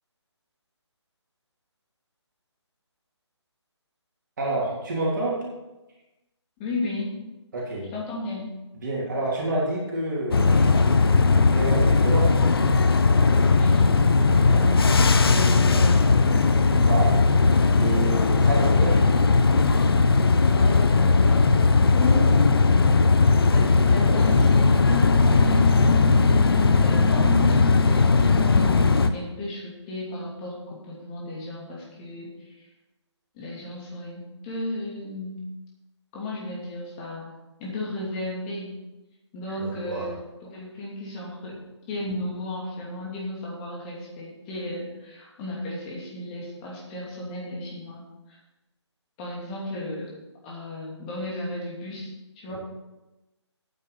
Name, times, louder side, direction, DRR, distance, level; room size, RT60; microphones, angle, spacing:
voice 1, 4.4-5.4 7.5-7.9 8.8-10.7 11.5-12.4 16.9-17.2 17.7-19.1 39.6-40.1 52.5-52.6, right 2 dB, 40° right, -4 dB, 3.4 m, -28 dB
voice 2, 6.6-7.1 7.9-8.5 13.4-15.0 15.3-16.0 16.3-16.5 20.4-22.6 23.5-32.7 33.3-35.4 36.1-37.3 37.6-38.7 39.3-40.2 40.5-41.6 41.9-48.4 49.2-50.1 50.4-52.1 52.4-52.5, left 1 dB, 20° left, -4 dB, 2.7 m, -34 dB
sound 1, 10.3-29.1, left 4 dB, 55° left, 0.8 m, -18 dB
9.3 x 7.4 x 6.7 m, 1.0 s
figure-of-eight pair, 155°, 15 cm